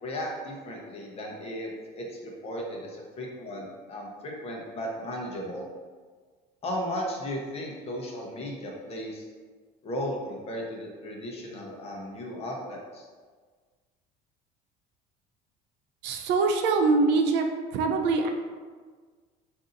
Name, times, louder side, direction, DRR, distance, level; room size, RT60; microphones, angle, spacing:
voice 1, 0.0-1.7 2.0-5.7 6.6-9.3 9.8-13.1, equal, 35° left, -1 dB, 0.8 m, -35 dB
voice 2, 16.0-17.5 17.7-18.3, right 3 dB, 70° right, 4 dB, 0.5 m, -23 dB
3.9 x 2.7 x 3.8 m, 1.5 s
cardioid pair, 145°, 19 cm